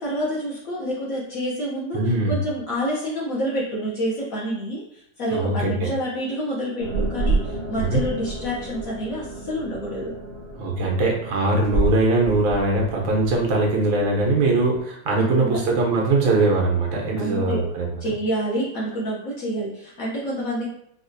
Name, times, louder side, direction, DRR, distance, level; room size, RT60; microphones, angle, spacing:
voice 1, 0.0-2.0 2.3-10.1 15.2-15.6 17.2-17.7 18.0-20.7, equal, 60° left, -5 dB, 1.0 m, -28 dB
voice 2, 1.9-2.3 5.3-5.9 7.8-8.0 10.6-17.9, right 2 dB, 80° right, 0 dB, 1.6 m, -21 dB
sound 1, 6.8-14.8, right 2 dB, 45° right, 0.8 m, -30 dB
4.2 x 2.4 x 2.5 m, 0.74 s
omnidirectional pair, 2.1 m